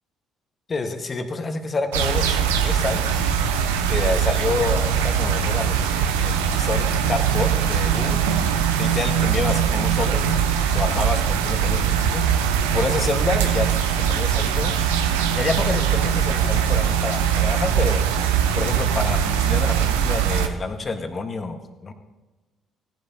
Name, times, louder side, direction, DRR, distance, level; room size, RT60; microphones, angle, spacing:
voice 1, 0.7-3.2 3.9-8.2 8.8-12.3 12.7-13.7 14.1-14.8 15.3-18.0 18.5-21.9, left 3 dB, 40° left, 6 dB, 1.5 m, -28 dB
sound 1, 1.9-20.5, right 8 dB, 85° right, 0.8 m, -21 dB
17.5 x 10.5 x 2.8 m, 1.2 s
hypercardioid pair, 50°, 0 cm